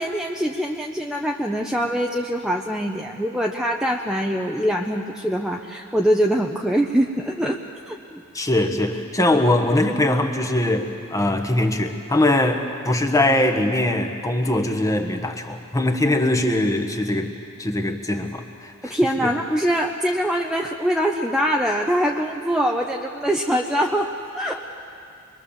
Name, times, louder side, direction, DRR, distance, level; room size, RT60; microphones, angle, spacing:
voice 1, 0.0-7.6 7.9-8.2 18.8-24.8, equal, 5° right, 0 dB, 0.8 m, -23 dB
voice 2, 8.3-17.3 17.6-19.3, left 1 dB, 15° left, 4 dB, 1.4 m, -22 dB
24.0 x 22.5 x 7.2 m, 2.5 s
head